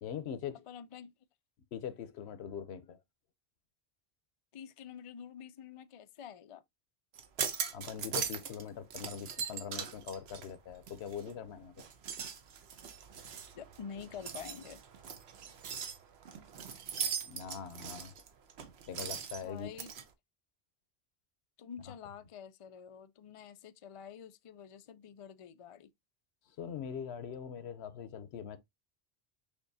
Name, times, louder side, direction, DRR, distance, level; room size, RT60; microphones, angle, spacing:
voice 1, 0.0-0.6 1.7-3.0 7.7-11.8 17.3-18.1 18.9-19.7 26.6-28.6, left 8 dB, 80° left, 0.9 m, -42 dB
voice 2, 0.7-1.1 4.5-6.6 13.5-14.8 18.1-18.2 19.4-19.9 21.6-25.9, left 7 dB, 60° left, 0.3 m, -48 dB
sound 1, 7.1-8.6 8.9-11.4 11.8-20.0, right 7 dB, 75° right, 1.0 m, -40 dB
6.4 x 2.9 x 2.6 m
omnidirectional pair, 1.1 m